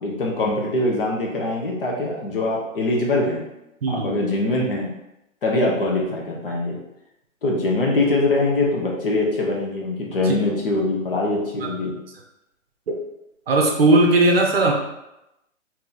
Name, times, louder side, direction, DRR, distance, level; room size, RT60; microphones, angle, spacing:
voice 1, 0.0-3.4 3.9-4.9 5.4-6.8 7.4-11.9, left 2 dB, 45° left, -2 dB, 0.9 m, -23 dB
voice 2, 13.5-14.7, right 2 dB, 45° right, 1 dB, 0.7 m, -17 dB
2.9 x 2.9 x 3.8 m, 0.90 s
hypercardioid pair, 155°, 40 cm